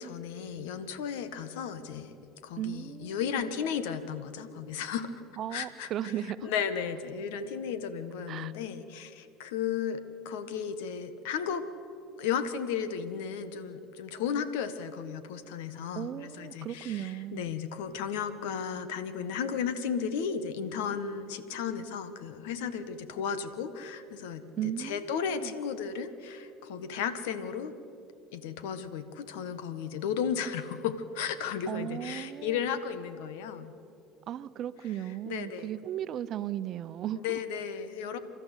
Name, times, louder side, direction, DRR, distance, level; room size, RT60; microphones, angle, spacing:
voice 1, 0.0-2.1 2.4-5.1 5.5-6.1 6.4-11.6 12.2-27.8 28.3-33.7 35.2-35.7 37.2-38.2, left 7 dB, 85° left, 1.4 m, -34 dB
voice 2, 2.6-3.4 5.4-6.5 8.3-8.5 15.9-17.5 24.6-25.5 31.7-32.6 34.3-37.4, right 11 dB, 55° right, 0.8 m, -36 dB
29.5 x 13.0 x 8.3 m
supercardioid pair, 85°, 0 cm